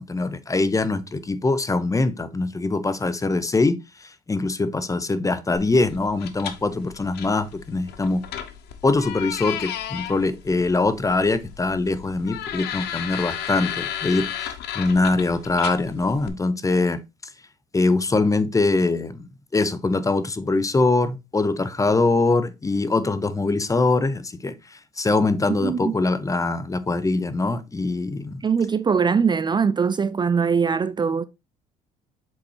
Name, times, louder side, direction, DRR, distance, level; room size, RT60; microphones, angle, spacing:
voice 1, 0.0-3.8 4.3-8.2 8.8-17.0 17.7-24.5 25.0-28.4, left 3 dB, 20° left, 0.8 m, -23 dB
sound 1, 5.5-16.3, left 10 dB, 70° left, 1.0 m, -34 dB
voice 2, 25.6-25.9 28.4-31.2, right 6 dB, 25° right, 0.5 m, -21 dB
7.3 x 5.1 x 2.9 m
supercardioid pair, 85°, 18 cm